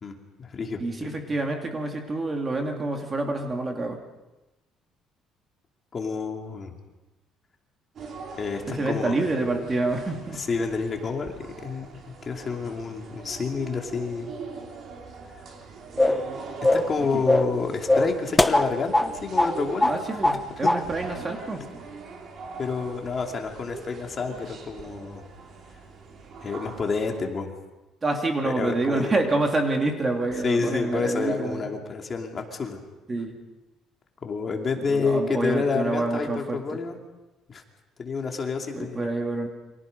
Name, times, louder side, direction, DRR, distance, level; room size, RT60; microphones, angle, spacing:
voice 1, 0.0-1.2 5.9-6.7 8.4-9.2 10.3-11.9 12.2-14.3 16.7-19.9 20.6-20.7 21.6-21.7 22.6-25.2 26.4-27.5 28.4-29.1 30.4-32.8 34.2-37.0 37.5-37.6 38.0-39.1, left 4 dB, 30° left, 2 dB, 2.7 m, -29 dB
voice 2, 0.8-4.0 8.7-10.4 17.1-17.2 19.9-21.7 28.0-31.7 33.1-33.3 34.9-36.6 38.7-39.5, right 2 dB, 20° right, 3 dB, 2.6 m, -27 dB
sound 1, 8.0-27.2, right 4 dB, 40° right, 3.4 m, -41 dB
sound 2, 16.0-16.3 16.6-16.9 17.3-17.6 17.9-19.1 19.4-19.5 19.8-20.4 20.7-20.8, left 1 dB, 5° left, 0.8 m, -21 dB
29.5 x 25.0 x 5.4 m, 1.0 s
cardioid pair, 155°, 0 cm